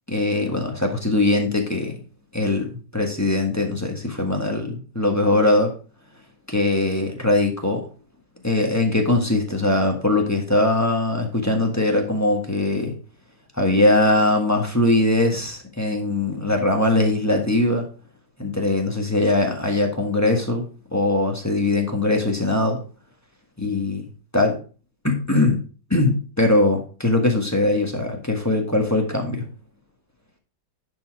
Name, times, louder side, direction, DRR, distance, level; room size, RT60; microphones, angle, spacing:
voice 1, 0.1-1.9 2.3-5.7 6.5-7.9 8.4-12.9 13.6-17.8 18.4-20.6 20.9-22.8 23.6-24.0 24.3-24.6 25.0-25.6 25.9-29.4, left 2 dB, 10° left, 2 dB, 1.2 m, -21 dB
11.0 x 4.5 x 4.6 m, 0.37 s
omnidirectional pair, 2.1 m